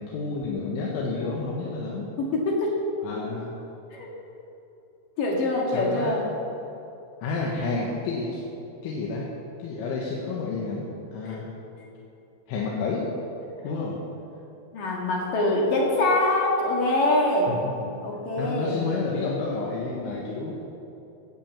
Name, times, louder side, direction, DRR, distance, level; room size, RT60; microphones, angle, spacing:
voice 1, 0.0-2.1 3.0-3.5 5.7-6.1 7.2-8.4 8.8-9.3 9.6-11.5 12.5-13.1 13.6-14.0 17.5-17.7 18.4-20.5, left 3 dB, 80° left, -3 dB, 3.7 m, -30 dB
voice 2, 2.2-2.8 3.9-4.1 5.2-6.2 11.3-11.4 11.8-11.9 14.7-18.8, left 2 dB, 55° left, -1 dB, 2.7 m, -24 dB
16.0 x 9.1 x 7.3 m, 2.8 s
omnidirectional pair, 5.7 m